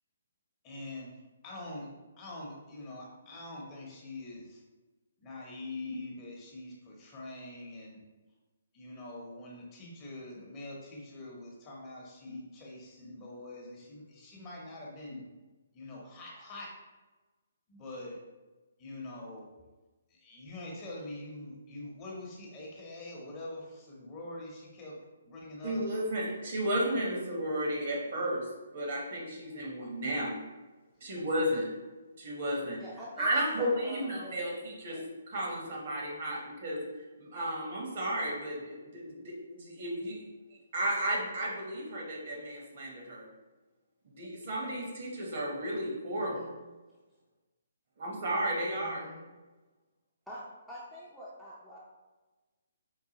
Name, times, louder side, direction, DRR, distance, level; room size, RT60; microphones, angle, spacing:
voice 1, 0.6-1.1 1.4-1.9 2.2-4.6 5.2-8.0 8.7-15.2 15.7-16.7 17.7-18.2 18.8-19.5 20.2-25.0 25.3-25.8, left 2 dB, 25° left, -3 dB, 0.8 m, -44 dB
voice 2, 25.6-28.5 28.7-30.3 31.0-31.7 32.2-32.8 33.2-35.0 35.3-36.9 37.2-40.2 40.7-43.3 44.0-46.5 48.0-49.1, right 1 dB, 55° right, -2 dB, 1.0 m, -33 dB
voice 3, 32.8-34.5 34.8-35.0 35.6-35.7 46.1-46.5 48.7-49.2 50.3-50.4 50.7-51.8, equal, 5° right, -9 dB, 0.5 m, -46 dB
4.6 x 2.2 x 2.9 m, 1.2 s
hypercardioid pair, 145°, 0 cm